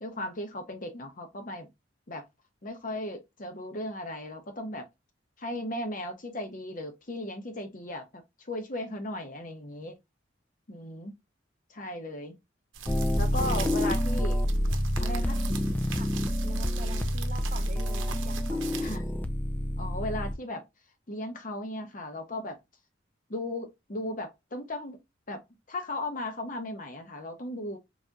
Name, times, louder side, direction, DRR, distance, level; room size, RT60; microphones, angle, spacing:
voice 1, 0.0-1.7 2.1-2.2 2.6-4.9 5.4-8.2 8.5-10.0 10.7-11.1 11.7-12.4 13.2-14.6 15.0-15.4 18.8-19.1 19.8-20.6 21.1-22.6 23.3-25.0 25.3-25.4 25.7-27.8, left 1 dB, 45° left, 0.8 m, -36 dB
sound 1, 12.7-19.0, right 6 dB, 90° right, 0.7 m, -42 dB
sound 2, 12.9-20.3, equal, 10° left, 0.3 m, -28 dB
voice 2, 16.4-19.0, right 2 dB, 40° right, 0.6 m, -44 dB
3.9 x 2.8 x 2.2 m
head